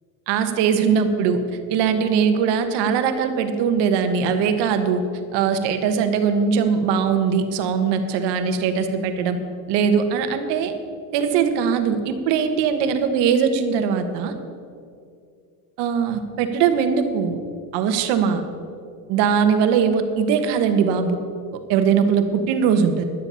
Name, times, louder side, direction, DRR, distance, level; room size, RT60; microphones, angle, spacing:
voice 1, 0.3-1.4 1.7-5.0 5.3-9.4 9.7-10.7 11.1-14.3 15.8-17.4 17.7-18.4 19.1-21.2 21.7-23.0, right 6 dB, 85° right, 8 dB, 1.3 m, -20 dB
12.0 x 10.0 x 5.6 m, 2.3 s
cardioid pair, 130°, 41 cm